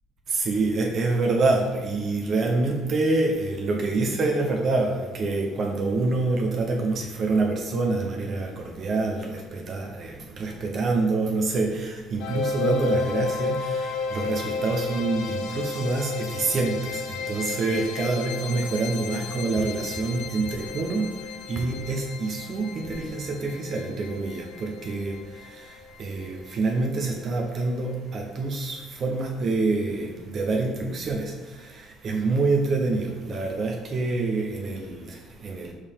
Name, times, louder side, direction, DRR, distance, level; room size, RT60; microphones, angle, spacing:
voice 1, 0.3-35.7, right 3 dB, 35° right, 1 dB, 0.7 m, -26 dB
sound 1, 12.2-27.2, left 5 dB, 65° left, 0.6 m, -33 dB
6.4 x 5.4 x 3.6 m, 1.2 s
cardioid pair, 180°, 0 cm